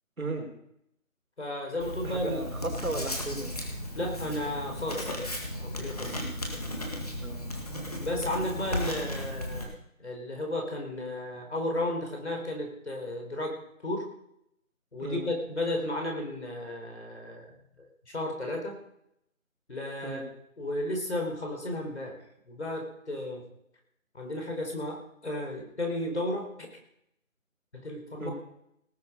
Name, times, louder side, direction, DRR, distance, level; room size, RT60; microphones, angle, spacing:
voice 1, 0.2-0.5 2.0-3.7 6.0-6.3 7.2-7.4 15.0-15.3 20.0-20.2 28.2-28.3, right 2 dB, 85° right, 3 dB, 4.0 m, -35 dB
voice 2, 1.4-2.4 3.9-5.1 5.6-6.2 8.0-9.7 10.0-14.1 14.9-18.7 19.7-20.3 20.6-22.1 22.5-23.4 24.1-26.5 27.7-28.3, left 1 dB, 55° left, 2 dB, 4.6 m, -33 dB
Writing, 1.8-9.6, left 1 dB, 25° left, 1.9 m, -35 dB
18.5 x 8.7 x 5.3 m, 0.75 s
figure-of-eight pair, 175°, 41 cm